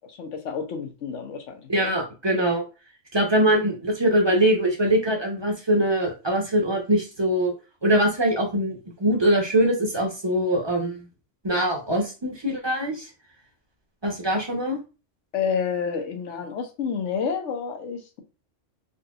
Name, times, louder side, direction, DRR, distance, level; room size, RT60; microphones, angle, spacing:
voice 1, 0.2-1.9 15.3-18.2, left 6 dB, 80° left, 1.1 m, -29 dB
voice 2, 1.7-2.6 3.1-7.5 7.8-11.1 11.4-13.1 14.0-14.8, right 1 dB, 25° right, 0.7 m, -22 dB
4.0 x 2.7 x 2.4 m
omnidirectional pair, 1.2 m